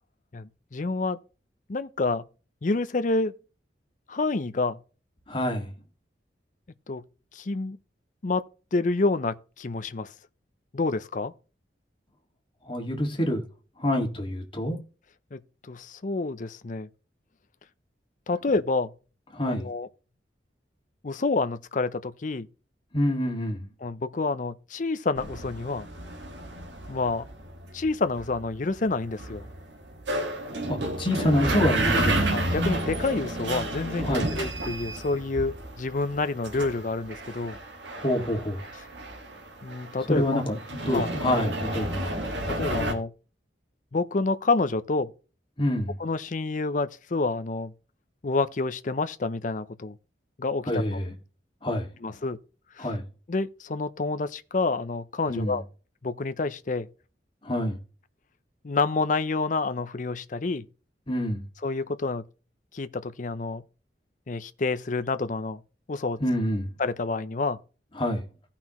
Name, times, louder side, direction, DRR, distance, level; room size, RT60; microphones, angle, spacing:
voice 1, 0.3-1.2 1.7-2.2 2.6-3.3 4.1-4.8 6.9-7.0 7.3-7.8 8.2-8.4 8.7-10.1 10.7-11.3 15.3-15.4 15.7-16.9 18.3-18.9 19.5-19.9 21.0-22.5 23.8-25.9 26.9-27.2 27.7-29.5 32.3-37.6 39.6-40.4 40.9-41.1 42.6-43.1 43.9-45.1 46.0-47.7 48.2-49.9 50.4-50.7 52.0-52.4 52.8-52.9 53.3-55.6 56.0-56.9 58.6-60.6 61.6-62.2 62.7-63.6 64.3-65.6 65.9-66.2 66.8-67.6, left 3 dB, 45° left, 0.5 m, -28 dB
voice 2, 5.3-5.7 12.7-13.4 13.8-14.8 19.3-19.7 22.9-23.7 30.7-32.3 34.0-34.4 38.0-38.6 40.0-42.2 45.6-45.9 50.6-51.1 51.6-51.9 52.8-53.0 55.3-55.6 57.4-57.8 61.1-61.4 66.2-66.7 68.0-68.2, left 1 dB, 30° left, 1.9 m, -27 dB
sound 1, 25.2-42.9, right 1 dB, 80° right, 1.7 m, -31 dB
16.0 x 5.7 x 3.0 m
head